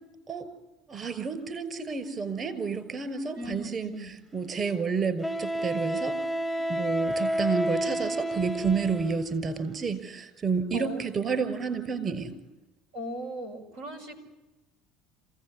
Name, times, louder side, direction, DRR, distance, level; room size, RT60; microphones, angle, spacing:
voice 1, 0.9-6.2 6.7-12.4, right 5 dB, 35° right, 11 dB, 5.7 m, -30 dB
voice 2, 3.3-4.1 10.7-11.1 12.9-14.2, equal, 90° right, 4 dB, 6.0 m, -38 dB
Wind instrument woodwind instrument, 3.9-4.0 5.2-9.3, equal, ahead, 0.8 m, -30 dB
27.5 x 17.0 x 10.0 m, 1.1 s
supercardioid pair, 100°, 0 cm